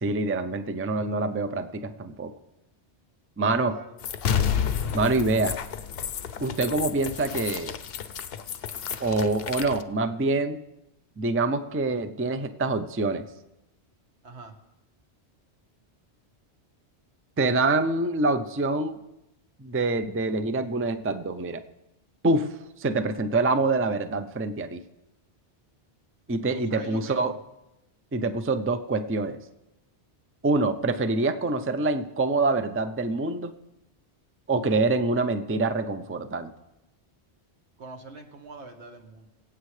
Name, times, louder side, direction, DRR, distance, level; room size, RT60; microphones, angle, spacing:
voice 1, 0.0-2.3 3.4-3.7 4.9-5.6 6.4-7.7 9.0-10.6 11.2-13.2 17.4-19.0 19.6-21.6 22.2-24.8 26.3-27.3 28.1-29.4 30.4-33.5 34.5-36.5, right 3 dB, 20° right, 9 dB, 0.4 m, -25 dB
voice 2, 3.5-4.0 14.2-14.5 26.7-27.4 37.8-39.3, right 3 dB, 80° right, 4 dB, 1.7 m, -43 dB
sound 1, 4.0-9.8, left 8 dB, 65° left, 0.8 m, -30 dB
23.5 x 8.3 x 3.3 m, 0.94 s
omnidirectional pair, 1.1 m